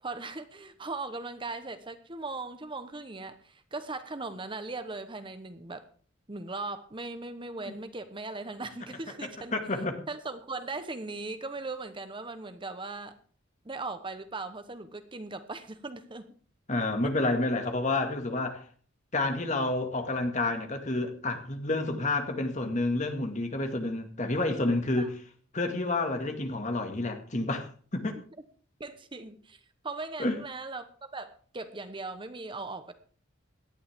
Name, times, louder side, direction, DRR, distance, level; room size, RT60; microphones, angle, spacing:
voice 1, 0.0-5.9 6.3-9.6 10.1-13.2 13.6-16.3 25.0-25.1 28.8-32.9, right 3 dB, 25° right, 10 dB, 1.0 m, -39 dB
voice 2, 9.5-10.0 16.7-18.6 19.1-25.1 25.5-28.2 30.2-30.4, left 2 dB, 35° left, 6 dB, 2.0 m, -29 dB
17.5 x 12.0 x 3.6 m, 0.43 s
head